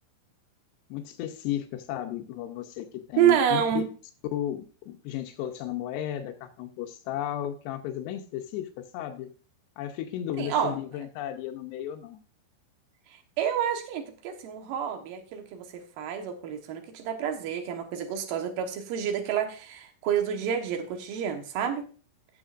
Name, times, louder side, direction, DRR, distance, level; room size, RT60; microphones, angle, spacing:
voice 1, 0.9-3.8 4.3-9.3 9.8-12.2, left 11 dB, 85° left, 5 dB, 2.4 m, -34 dB
voice 2, 3.2-3.8 10.4-10.8 13.4-15.7 16.0-21.9, right 9 dB, 80° right, 4 dB, 2.0 m, -28 dB
17.5 x 7.3 x 2.5 m, 0.38 s
omnidirectional pair, 5.9 m